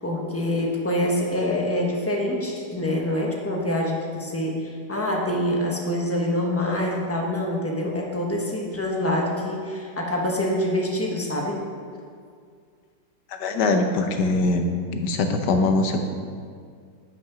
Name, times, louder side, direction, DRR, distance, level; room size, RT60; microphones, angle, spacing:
voice 1, 0.0-11.6, left 1 dB, 10° left, -1 dB, 1.0 m, -25 dB
voice 2, 13.4-14.6 14.9-16.0, left 3 dB, 80° left, 5 dB, 1.5 m, -22 dB
8.6 x 5.8 x 6.1 m, 2.1 s
omnidirectional pair, 1.8 m